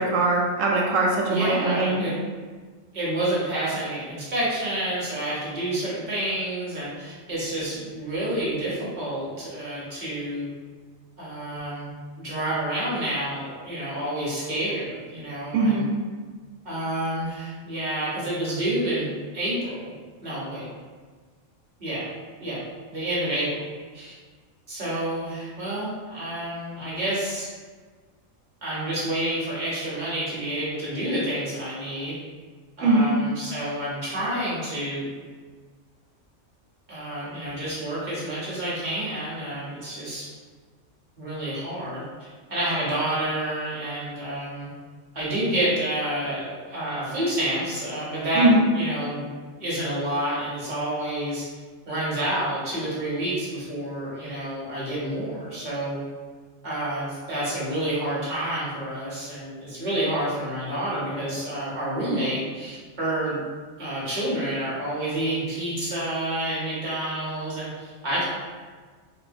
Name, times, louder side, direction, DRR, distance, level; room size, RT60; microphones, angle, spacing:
voice 1, 0.0-2.0 15.5-15.9 32.8-33.1 48.3-48.7, right 2 dB, 75° right, -1 dB, 1.0 m, -21 dB
voice 2, 1.3-2.2 2.9-10.5 11.2-15.8 16.6-19.9 20.2-20.7 21.8-22.1 22.4-22.6 22.9-23.6 23.9-24.2 24.7-27.5 28.6-32.1 32.8-35.1 36.9-40.3 41.2-42.0 42.5-44.7 45.1-48.5 48.7-49.3 49.6-51.5 51.9-56.0 56.6-63.4 63.8-68.2, right 1 dB, 40° right, -7 dB, 0.9 m, -29 dB
3.6 x 2.1 x 2.5 m, 1.5 s
omnidirectional pair, 1.4 m